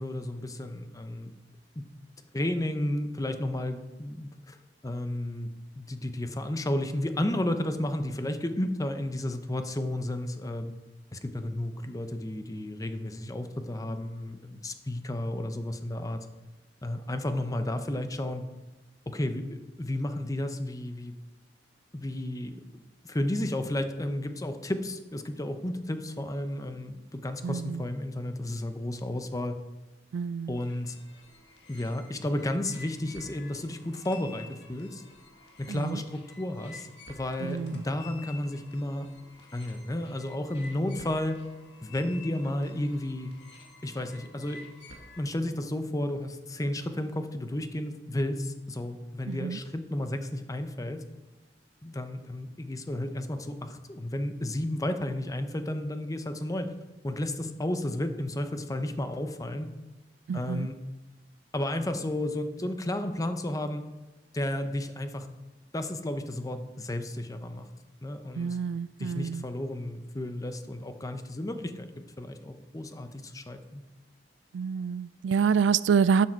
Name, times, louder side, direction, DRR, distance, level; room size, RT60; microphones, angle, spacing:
voice 1, 0.0-1.3 1.8-1.9 2.3-4.6 4.8-5.5 5.8-10.7 11.1-16.2 16.8-18.4 19.1-21.1 21.9-29.5 30.5-30.9 31.7-35.0 35.6-39.1 39.5-41.4 41.8-43.3 43.8-44.6 45.2-51.0 51.8-56.7 57.0-59.7 60.3-60.8 61.5-63.8 64.3-65.3 65.7-67.7 68.0-68.6 69.0-71.9 72.2-73.8, left 1 dB, 20° left, 0.7 m, -32 dB
voice 2, 27.4-27.8 30.1-30.5 35.7-36.0 37.5-37.8 49.3-49.6 60.3-60.7 68.4-69.4 74.5-76.3, right 6 dB, 85° right, 0.3 m, -27 dB
sound 1, 30.5-45.2, left 3 dB, 70° left, 1.7 m, -51 dB
12.0 x 7.3 x 4.5 m
head